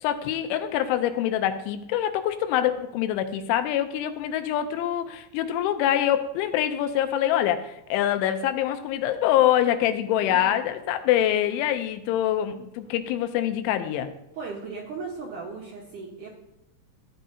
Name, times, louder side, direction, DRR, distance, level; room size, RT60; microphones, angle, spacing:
voice 1, 0.0-14.1, left 11 dB, 90° left, 8 dB, 3.1 m, -25 dB
voice 2, 14.4-16.3, right 4 dB, 70° right, -4 dB, 1.9 m, -37 dB
14.0 x 9.2 x 2.7 m, 0.88 s
omnidirectional pair, 5.5 m